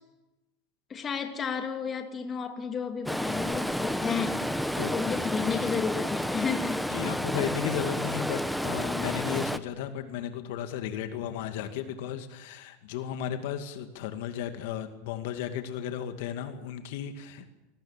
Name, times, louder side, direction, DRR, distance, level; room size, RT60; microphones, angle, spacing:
voice 1, 0.9-4.5 4.9-6.9, left 6 dB, 25° left, 5 dB, 2.7 m, -32 dB
Stream, 3.1-9.6, equal, ahead, 0.9 m, -30 dB
voice 2, 6.9-17.5, left 9 dB, 70° left, 7 dB, 2.3 m, -34 dB
27.5 x 19.5 x 7.4 m, 1.0 s
supercardioid pair, 140°, 0 cm